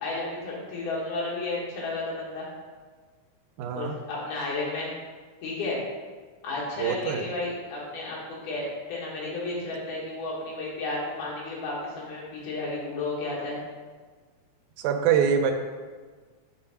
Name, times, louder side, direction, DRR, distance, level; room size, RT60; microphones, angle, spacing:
voice 1, 0.0-2.5 3.7-4.9 5.4-5.8 6.4-13.6, left 2 dB, 80° left, -6 dB, 2.8 m, -32 dB
voice 2, 3.6-4.0 6.8-7.2 14.8-15.5, right 7 dB, 85° right, 5 dB, 2.0 m, -24 dB
5.7 x 3.4 x 5.5 m, 1.5 s
omnidirectional pair, 3.4 m